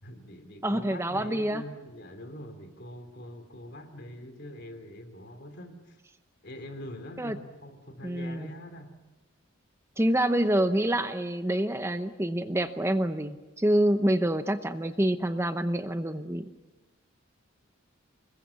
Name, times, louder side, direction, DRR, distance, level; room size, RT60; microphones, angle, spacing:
voice 1, 0.0-6.0 6.4-8.9, left 1 dB, 50° left, 8 dB, 3.0 m, -44 dB
voice 2, 0.6-1.6 7.2-7.4 8.0-8.5 10.0-16.5, right 1 dB, 10° right, 9 dB, 0.8 m, -27 dB
26.0 x 21.5 x 7.1 m, 1.1 s
head